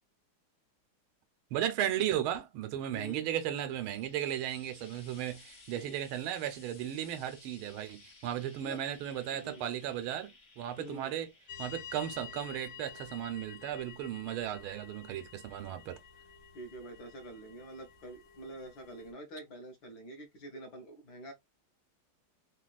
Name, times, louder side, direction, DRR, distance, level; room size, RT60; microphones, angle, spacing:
voice 1, 1.5-11.3 11.6-16.0, right 11 dB, 85° right, 1.5 m, -35 dB
voice 2, 2.9-3.3 5.7-5.9 8.6-8.8 9.3-9.7 10.8-11.1 16.5-21.3, right 1 dB, 60° left, 1.3 m, -46 dB
Frying (food), 3.2-16.6 17.5-17.6, left 3 dB, 45° left, 0.9 m, -59 dB
sound 1, 11.5-19.1, left 8 dB, 75° left, 1.5 m, -50 dB
3.8 x 2.4 x 2.3 m
omnidirectional pair, 2.3 m